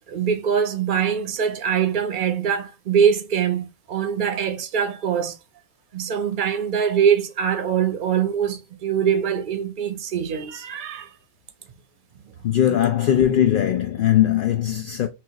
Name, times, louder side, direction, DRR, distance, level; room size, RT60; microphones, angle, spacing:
voice 1, 0.1-5.4 5.9-11.1 12.7-12.8, right 8 dB, 45° right, 0.8 m, -23 dB
voice 2, 12.4-15.1, left 11 dB, 60° left, 0.5 m, -19 dB
5.8 x 2.4 x 3.0 m
omnidirectional pair, 1.3 m